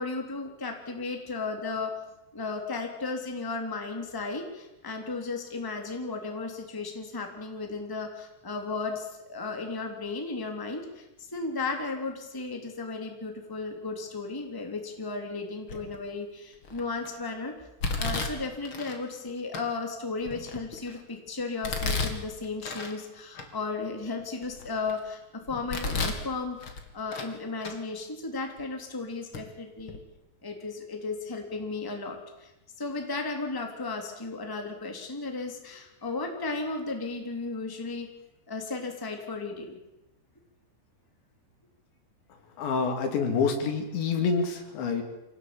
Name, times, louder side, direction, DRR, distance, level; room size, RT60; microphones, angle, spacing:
voice 1, 0.0-2.0 2.3-17.7 17.9-30.0 30.4-32.5 32.8-38.1 38.5-39.8, left 3 dB, 5° left, 3 dB, 2.4 m, -35 dB
Domestic sounds home sounds, 15.7-16.1 16.6-17.1 17.8-19.0 19.5-19.6 20.2-21.0 21.6-23.0 23.3-23.5 24.0-25.0 25.5-26.2 26.6-27.3 27.6-27.8 28.6-28.7 29.3-29.4 29.8-30.0, left 3 dB, 35° left, 2.6 m, -33 dB
voice 2, 42.6-45.0, left 5 dB, 75° left, 5 dB, 5.2 m, -27 dB
26.0 x 18.0 x 8.9 m, 0.96 s
omnidirectional pair, 5.3 m